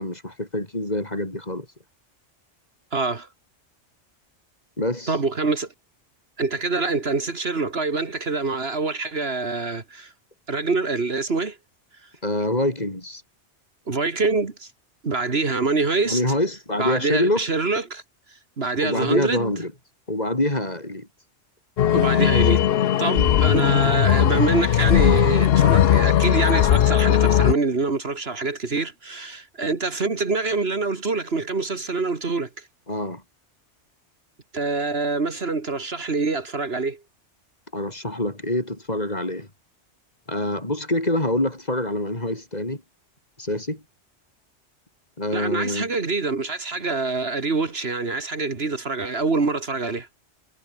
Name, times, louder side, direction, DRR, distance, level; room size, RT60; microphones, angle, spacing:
voice 1, 0.0-1.7 4.8-5.1 12.2-13.2 16.0-17.4 18.8-19.7 20.1-21.1 32.9-33.2 37.7-39.5 40.3-42.8 43.4-43.8 45.2-45.9, left 1 dB, 35° left, 4.5 m, -25 dB
voice 2, 2.9-3.3 5.1-5.7 6.4-10.1 10.5-11.6 13.9-14.7 15.0-16.2 16.8-18.0 18.6-19.6 21.9-22.7 23.0-32.7 34.5-37.0 45.3-50.1, right 3 dB, 55° right, 2.2 m, -25 dB
The Mind Lives on, 21.8-27.5, left 10 dB, 60° left, 0.8 m, -18 dB
omnidirectional pair, 1.2 m